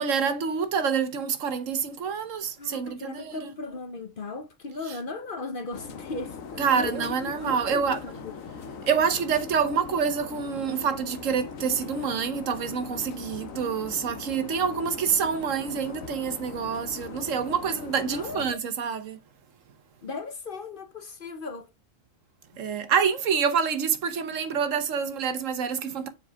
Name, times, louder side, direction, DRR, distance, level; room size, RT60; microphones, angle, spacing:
voice 1, 0.0-3.5 6.6-8.0 8.8-19.2 22.6-26.1, right 6 dB, 75° right, 1.3 m, -27 dB
voice 2, 2.6-8.3 8.8-8.9 18.1-18.4 20.0-21.7, left 3 dB, 45° left, 0.9 m, -37 dB
sound 1, 5.7-18.5, left 5 dB, 85° left, 1.2 m, -40 dB
7.3 x 4.7 x 3.4 m
omnidirectional pair, 1.4 m